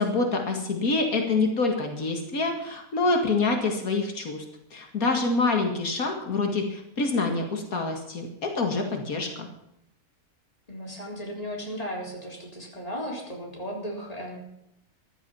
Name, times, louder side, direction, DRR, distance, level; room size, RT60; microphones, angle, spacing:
voice 1, 0.0-4.4 4.7-9.5, left 3 dB, 85° left, 3 dB, 2.4 m, -26 dB
voice 2, 10.7-14.4, equal, 25° left, -1 dB, 3.9 m, -35 dB
14.5 x 12.5 x 5.6 m, 0.82 s
omnidirectional pair, 1.5 m